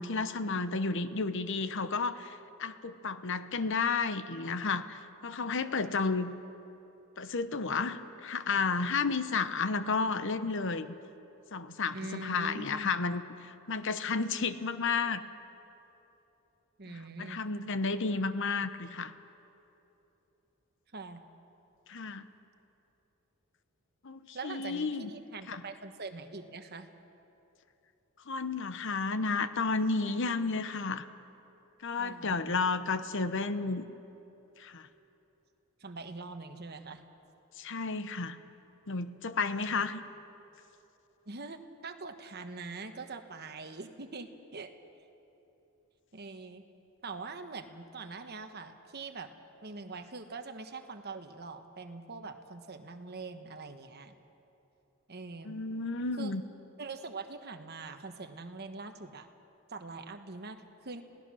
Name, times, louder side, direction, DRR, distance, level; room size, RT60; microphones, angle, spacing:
voice 1, 0.0-6.3 7.2-10.9 11.5-15.2 16.9-19.1 21.9-22.3 24.0-25.1 25.5-25.6 28.3-31.0 31.8-33.8 34.6-34.9 37.6-38.4 38.9-40.0 55.4-56.4, left 4 dB, 55° left, 12 dB, 0.9 m, -32 dB
voice 2, 11.9-12.9 16.8-17.4 20.9-21.2 24.3-26.9 30.1-30.2 32.0-32.9 35.8-37.0 39.7-39.9 41.3-44.7 46.1-46.6 47.0-49.3 49.6-54.1 55.1-55.5 56.2-56.3 56.8-59.3 59.7-61.0, right 3 dB, 45° right, 7 dB, 1.2 m, -43 dB
28.0 x 17.5 x 6.3 m, 3.0 s
head